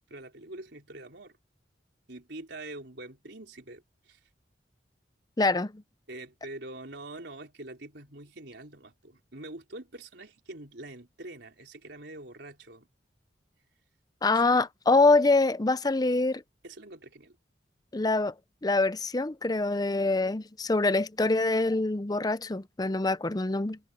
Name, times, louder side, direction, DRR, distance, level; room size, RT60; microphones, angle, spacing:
voice 1, 0.1-1.4 2.1-4.2 6.1-12.9 14.3-14.6 16.6-17.4, right 2 dB, 65° right, 4.3 m, -45 dB
voice 2, 5.4-5.8 14.2-16.4 17.9-18.3 18.6-23.8, left 3 dB, 20° left, 0.6 m, -25 dB
head